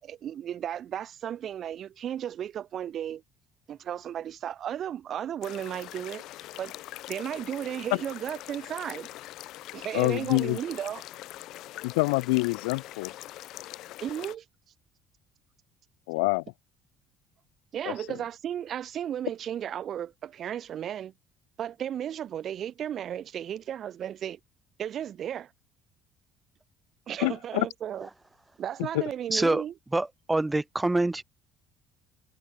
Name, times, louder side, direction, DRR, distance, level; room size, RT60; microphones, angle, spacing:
voice 1, 0.0-3.2 3.7-6.2 6.6-6.7 7.1-9.1 9.7-11.0 14.0-14.4 17.7-21.1 21.6-24.4 24.8-25.5 27.1-28.1 28.6-29.7, right 10 dB, 55° right, 3.7 m, -34 dB
sound 1, 5.4-14.4, left 16 dB, 70° left, 7.0 m, -43 dB
voice 2, 9.9-10.6 11.8-13.1 16.1-16.4 17.9-18.0 27.2-27.7 28.9-29.0, left 28 dB, 85° left, 4.2 m, -26 dB
voice 3, 29.3-29.6 29.9-31.2, right 2 dB, 15° right, 5.1 m, -25 dB
supercardioid pair, 75°, 0 cm